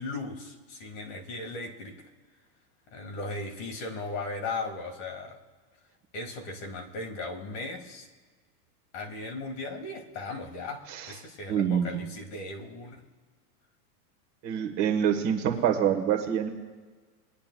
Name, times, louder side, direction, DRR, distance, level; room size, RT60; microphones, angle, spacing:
voice 1, 0.0-2.0 2.9-5.4 6.1-8.1 8.9-13.0, left 3 dB, 45° left, 3 dB, 1.8 m, -37 dB
voice 2, 11.5-12.0 14.4-16.5, right 9 dB, 35° right, 3 dB, 1.2 m, -26 dB
21.5 x 10.5 x 2.2 m, 1.4 s
supercardioid pair, 160°, 46 cm